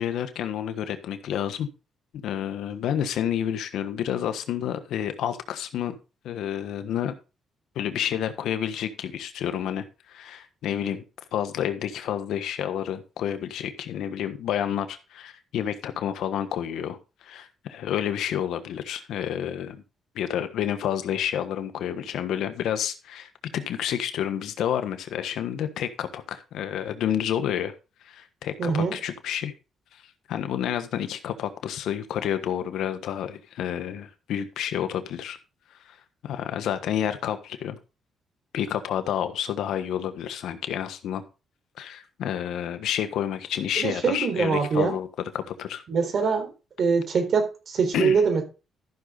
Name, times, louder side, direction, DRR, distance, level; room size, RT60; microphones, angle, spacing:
voice 1, 0.0-1.7 2.2-6.0 6.2-7.1 7.7-11.0 11.3-19.8 20.1-27.7 28.0-29.5 29.9-30.0 30.3-35.4 35.8-36.0 36.2-37.8 38.5-41.2 41.8-45.1 45.3-45.8 47.9-48.2, left 10 dB, 80° left, 9 dB, 1.3 m, -29 dB
voice 2, 28.6-28.9 43.8-44.9 45.9-46.5 46.8-48.4, right 5 dB, 55° right, 6 dB, 4.0 m, -23 dB
13.5 x 6.6 x 4.0 m, 0.31 s
cardioid pair, 90°, 0 cm